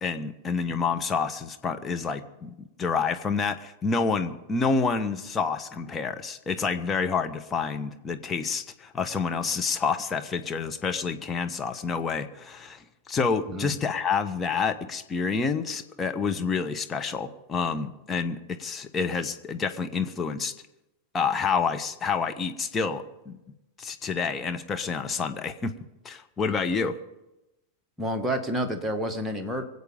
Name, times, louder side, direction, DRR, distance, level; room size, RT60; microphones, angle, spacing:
voice 1, 0.0-20.5 21.1-23.4 23.8-25.7 26.0-27.0, left 5 dB, 20° left, 7 dB, 1.1 m, -28 dB
voice 2, 28.0-29.6, equal, 10° right, 3 dB, 1.8 m, -29 dB
24.0 x 8.3 x 5.1 m, 0.94 s
figure-of-eight pair, 90°, 0 cm